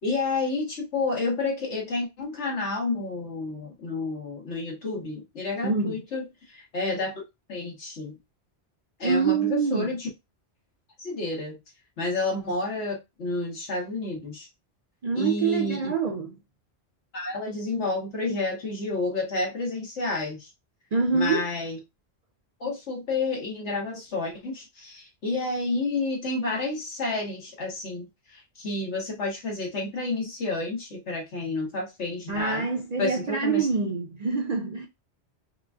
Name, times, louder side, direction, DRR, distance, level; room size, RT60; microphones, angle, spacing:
voice 1, 0.0-7.2 7.5-8.1 9.0-10.1 11.0-11.5 12.0-14.5 15.1-15.9 17.1-20.5 21.1-21.8 22.6-32.7 33.0-33.7, left 3 dB, 85° left, 1.7 m, -30 dB
voice 2, 5.6-6.0 9.0-9.9 15.0-16.3 20.9-21.5 32.3-34.9, right 5 dB, 55° right, 0.4 m, -25 dB
4.8 x 2.6 x 2.4 m
omnidirectional pair, 1.1 m